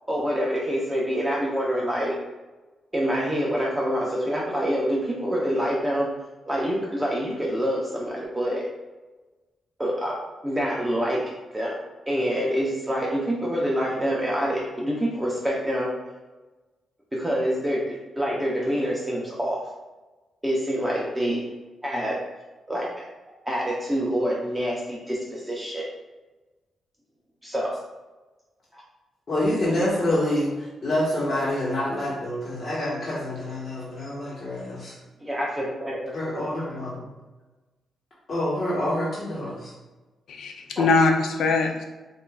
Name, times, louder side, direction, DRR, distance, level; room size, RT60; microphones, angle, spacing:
voice 1, 0.1-2.2 2.9-6.1 6.5-8.6 9.8-10.1 10.4-11.2 11.5-11.8 12.1-15.9 17.1-19.6 20.4-21.5 21.8-22.2 22.7-23.0 23.5-25.9 27.4-27.7 28.7-28.8 35.2-36.1 40.8-40.9, equal, 15° right, -4 dB, 0.7 m, -26 dB
voice 2, 29.3-34.9 36.1-37.0 38.3-39.7, left 1 dB, 50° left, -8 dB, 1.2 m, -27 dB
voice 3, 40.3-41.8, left 3 dB, 80° left, 3 dB, 0.5 m, -22 dB
5.1 x 2.5 x 2.3 m, 1.2 s
cardioid pair, 65°, 0 cm